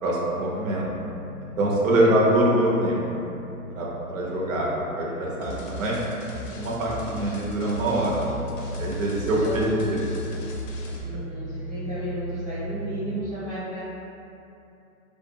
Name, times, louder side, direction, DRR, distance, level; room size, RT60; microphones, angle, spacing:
voice 1, 0.0-0.9 1.4-3.0 3.7-6.0 6.6-8.2 8.7-10.0, right 1 dB, 60° right, -4 dB, 0.7 m, -24 dB
sound 1, 0.8-13.2, right 1 dB, 85° right, 1.0 m, -38 dB
sound 2, 5.4-11.0, left 1 dB, 60° left, 0.5 m, -39 dB
voice 2, 9.2-10.0 10.9-13.8, right 1 dB, 10° left, -19 dB, 0.4 m, -33 dB
2.4 x 2.2 x 2.7 m, 2.8 s
hypercardioid pair, 125°, 44 cm